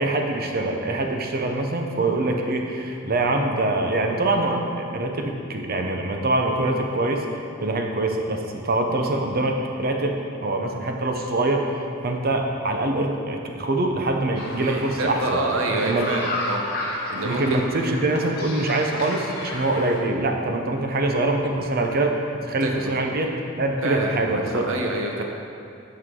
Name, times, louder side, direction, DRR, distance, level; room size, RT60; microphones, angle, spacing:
voice 1, 0.0-7.2 7.6-11.8 12.0-15.2 15.8-16.1 17.2-22.1 22.4-24.7, right 2 dB, 50° right, 3 dB, 0.7 m, -24 dB
sound 1, 14.4-20.0, left 2 dB, 50° left, 1.2 m, -33 dB
voice 2, 14.6-16.6 17.1-17.6 18.3-18.4 22.6-22.9 23.8-25.2, right 2 dB, 75° right, 1 dB, 0.8 m, -27 dB
9.6 x 5.8 x 3.7 m, 2.6 s
head